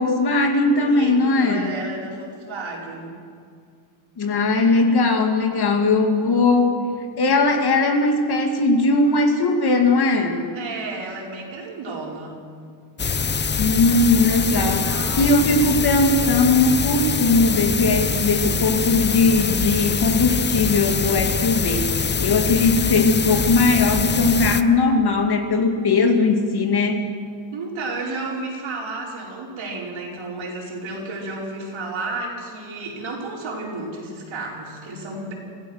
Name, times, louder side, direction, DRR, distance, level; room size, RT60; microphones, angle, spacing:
voice 1, 0.0-1.7 4.2-6.8 7.2-10.6 13.6-27.0, left 3 dB, 50° left, 4 dB, 2.4 m, -19 dB
voice 2, 0.8-3.2 7.1-7.2 10.5-12.4 14.5-15.6 27.5-35.3, right 3 dB, 70° right, -2 dB, 5.1 m, -32 dB
sound 1, 13.0-24.6, left 6 dB, 25° left, 0.5 m, -24 dB
25.5 x 16.5 x 6.4 m, 2.2 s
wide cardioid pair, 145°, 49 cm